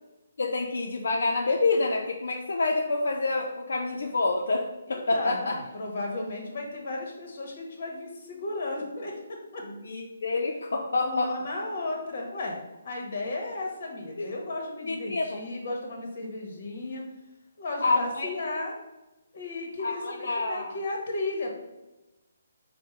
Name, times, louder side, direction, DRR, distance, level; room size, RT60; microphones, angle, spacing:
voice 1, 0.4-5.5 9.6-11.3 14.2-14.3 14.9-15.4 17.8-18.3 19.8-20.7, left 3 dB, 75° left, 1 dB, 0.5 m, -27 dB
voice 2, 4.9-9.6 11.0-12.6 12.8-17.1 17.6-18.8 19.3-21.5, left 2 dB, 45° left, 0 dB, 1.1 m, -34 dB
4.4 x 2.1 x 4.5 m, 1.0 s
hypercardioid pair, 170°, 0 cm